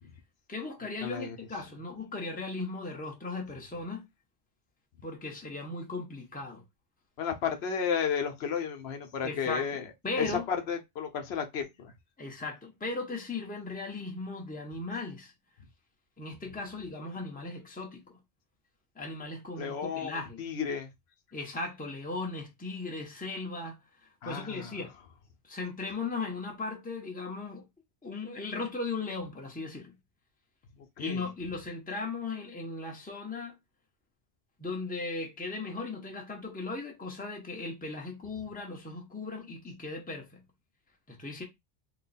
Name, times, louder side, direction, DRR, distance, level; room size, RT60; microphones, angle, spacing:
voice 1, 0.5-4.1 5.0-6.6 9.2-10.4 12.2-15.3 16.2-18.2 19.0-20.4 21.3-23.8 24.2-24.9 25.4-27.6 28.0-29.9 31.0-33.5 34.6-40.4 41.1-41.4, left 3 dB, 10° left, 0.7 m, -37 dB
voice 2, 1.0-1.4 7.2-9.8 10.2-11.9 19.6-20.9 24.2-24.8 31.0-31.2, left 7 dB, 75° left, 0.9 m, -33 dB
2.9 x 2.2 x 4.0 m
omnidirectional pair, 1.1 m